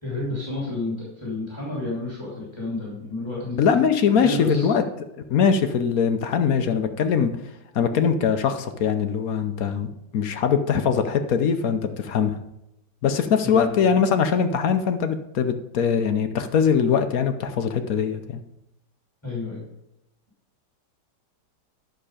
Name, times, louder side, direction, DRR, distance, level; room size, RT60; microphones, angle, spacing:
voice 1, 0.0-3.7 4.1-4.7 13.4-13.7 19.2-19.6, left 2 dB, 15° left, -6 dB, 3.1 m, -30 dB
voice 2, 3.6-4.8 5.3-7.4 7.7-9.9 10.1-12.4 13.0-18.4, left 6 dB, 60° left, 8 dB, 1.1 m, -22 dB
11.5 x 6.6 x 4.9 m, 0.85 s
omnidirectional pair, 1.9 m